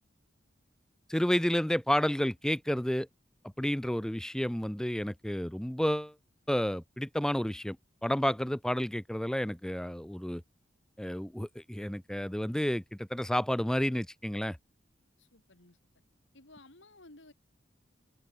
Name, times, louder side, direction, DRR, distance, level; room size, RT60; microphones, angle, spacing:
voice 1, 1.1-3.1 3.6-6.1 6.5-7.8 8.0-10.4 11.0-14.6, equal, 5° left, 0.4 m, -30 dB
voice 2, 15.2-15.8 16.3-17.3, left 2 dB, 80° left, 4.5 m, -55 dB
head